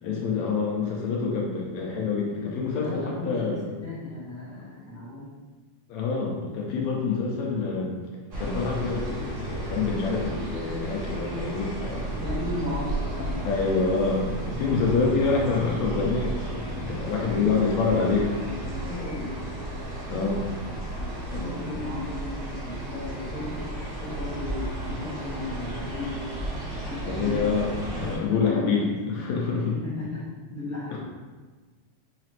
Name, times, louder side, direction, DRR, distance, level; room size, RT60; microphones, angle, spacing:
voice 1, 0.0-3.7 5.9-7.9 8.4-12.1 13.4-18.3 20.1-20.5 21.3-21.8 27.1-29.7 30.9-31.0, left 4 dB, 80° left, -2 dB, 1.8 m, -26 dB
voice 2, 2.7-5.3 11.9-13.6 14.3-14.4 17.0-19.4 21.2-26.5 26.9-27.4 28.2-31.0, left 2 dB, 60° left, -13 dB, 0.9 m, -36 dB
sound 1, 8.3-28.2, right 1 dB, 45° right, 1.8 m, -34 dB
sound 2, 11.7-21.5, right 3 dB, 80° right, 1.9 m, -44 dB
5.8 x 3.0 x 2.9 m, 1.4 s
omnidirectional pair, 3.5 m